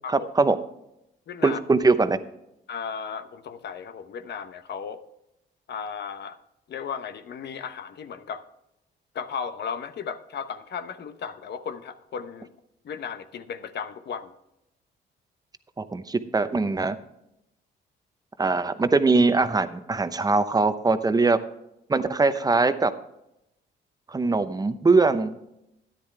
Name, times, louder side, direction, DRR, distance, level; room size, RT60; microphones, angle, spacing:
voice 1, 0.1-0.6 1.4-2.2 15.8-17.0 18.4-21.4 21.9-22.9 24.1-25.3, right 3 dB, 20° right, 11 dB, 0.8 m, -22 dB
voice 2, 1.3-1.6 2.7-5.0 5.7-6.4 6.7-8.4 9.1-12.5 12.8-14.3, left 6 dB, 60° left, 10 dB, 0.9 m, -35 dB
13.5 x 10.0 x 3.3 m, 0.85 s
cardioid pair, 90°, 20 cm